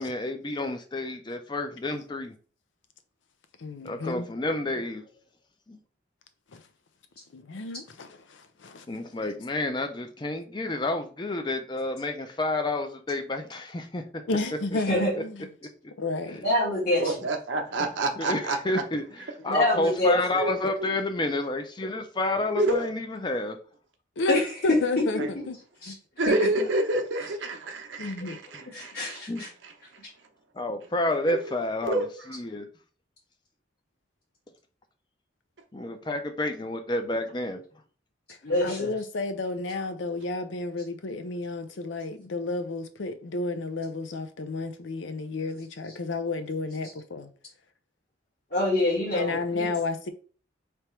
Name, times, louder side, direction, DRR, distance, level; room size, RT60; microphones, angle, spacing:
voice 1, 0.0-2.3 3.8-5.0 5.7-5.8 8.9-14.2 15.1-15.2 16.3-16.4 17.8-17.9 18.2-23.6 28.8-28.9 29.3-29.4 30.5-32.7 35.7-37.6, left 2 dB, 25° left, 0.5 m, -30 dB
voice 2, 3.6-4.3 6.5-6.6 7.3-8.9 14.3-15.5 16.0-16.4 24.2-25.2 25.5-25.6 25.8-26.0 28.0-28.4 38.6-47.3 49.1-50.1, left 3 dB, 80° left, 0.5 m, -31 dB
voice 3, 16.4-17.2 19.5-20.1 24.3-24.5 25.1-25.2 25.8-25.9 26.3-26.6 28.2-28.3 28.6-29.5 38.4-38.9 48.5-49.7, left 1 dB, 50° left, 1.6 m, -26 dB
voice 4, 17.0-18.8 20.4-20.9 22.6-22.9 25.2-25.3 26.2-29.5 31.3-31.5 31.8-32.1, right 2 dB, 80° right, 0.8 m, -28 dB
3.4 x 2.9 x 4.4 m
head